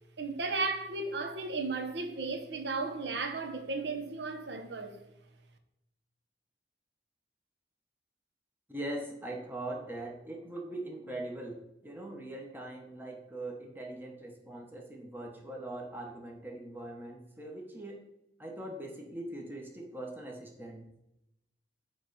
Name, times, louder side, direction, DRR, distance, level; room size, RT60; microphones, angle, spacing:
voice 1, 0.2-4.9, right 3 dB, 70° right, 0.8 m, -34 dB
voice 2, 8.7-18.0 18.4-20.9, right 1 dB, 10° right, 1.0 m, -41 dB
8.5 x 3.2 x 4.1 m
head